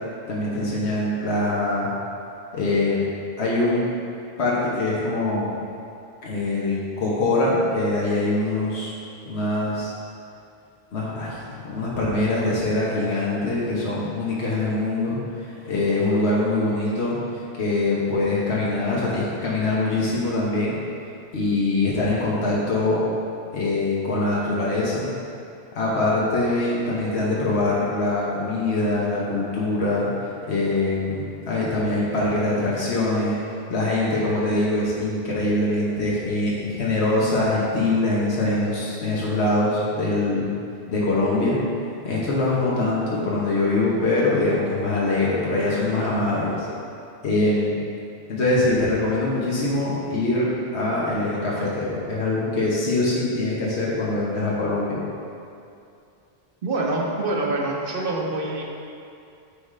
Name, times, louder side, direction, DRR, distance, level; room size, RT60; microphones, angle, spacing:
voice 1, 0.3-1.9 2.5-3.0 3.4-3.9 4.4-5.5 6.2-8.9 9.2-9.9 10.9-17.2 17.6-20.7 21.3-23.0 23.5-25.1 25.7-33.4 33.7-40.5 40.9-41.6 42.0-46.7 47.2-47.8 48.3-55.0, left 2 dB, 90° left, -6 dB, 1.3 m, -23 dB
voice 2, 56.6-58.6, right 2 dB, 60° right, -1 dB, 0.9 m, -25 dB
9.7 x 3.7 x 3.2 m, 2.6 s
omnidirectional pair, 1.1 m